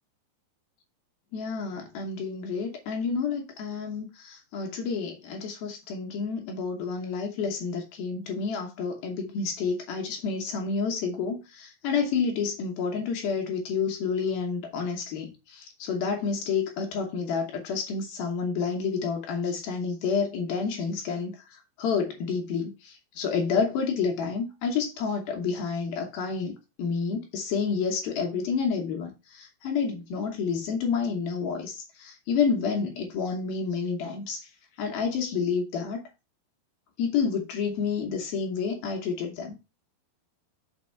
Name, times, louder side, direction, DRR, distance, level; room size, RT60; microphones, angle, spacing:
voice 1, 1.3-34.5 34.8-36.1 37.0-39.6, left 5 dB, 70° left, 2.8 m, -29 dB
6.3 x 4.7 x 4.5 m
omnidirectional pair, 4.7 m